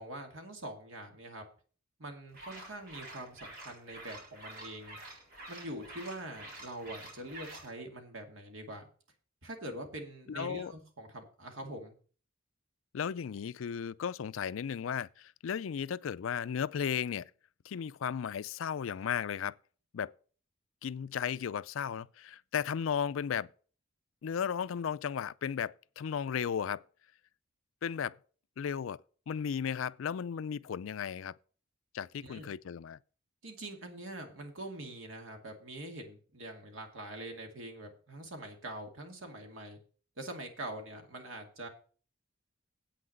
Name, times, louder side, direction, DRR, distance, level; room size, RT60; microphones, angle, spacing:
voice 1, 0.0-1.4 2.0-5.0 5.5-8.9 9.4-11.9 32.2-32.5 33.4-39.8 40.2-41.7, right 1 dB, 75° right, 2.3 m, -44 dB
sound 1, 2.3-7.7, right 2 dB, 50° right, 4.0 m, -48 dB
voice 2, 10.3-10.7 12.9-17.3 17.6-19.6 19.9-20.1 20.8-23.5 24.2-26.8 27.8-28.2 28.6-29.0 29.3-31.3 31.9-33.0, left 7 dB, 75° left, 0.4 m, -35 dB
8.4 x 5.9 x 7.8 m
head